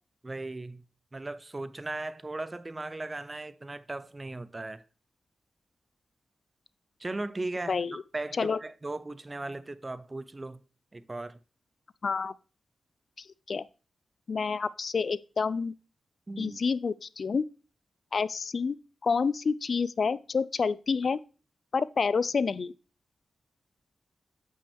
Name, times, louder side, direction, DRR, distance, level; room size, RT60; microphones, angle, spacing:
voice 1, 0.2-0.8 1.1-4.8 7.0-10.6 10.9-11.4 16.3-16.6, right 2 dB, 35° right, 0.6 m, -37 dB
voice 2, 7.7-8.0 8.4-8.6 12.0-12.3 13.2-13.7 14.3-15.7 16.4-17.4 18.1-18.7 19.0-21.2 21.7-22.7, left 5 dB, 65° left, 0.3 m, -28 dB
8.3 x 5.4 x 3.4 m
supercardioid pair, 40°, 0 cm